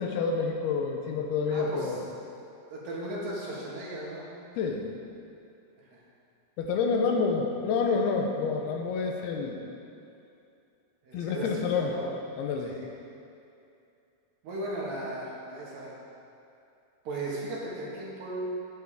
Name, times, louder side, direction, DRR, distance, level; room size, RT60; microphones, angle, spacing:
voice 1, 0.0-2.0 4.6-4.9 6.6-9.6 11.1-11.9 12.4-12.8, left 5 dB, 85° left, 2 dB, 2.7 m, -28 dB
voice 2, 1.5-1.9 2.7-4.3 5.8-6.0 11.0-11.5 11.8-12.1 12.6-12.9 14.4-15.9 17.0-18.4, right 1 dB, 65° right, -5 dB, 3.3 m, -36 dB
13.5 x 9.3 x 3.7 m, 2.6 s
omnidirectional pair, 4.6 m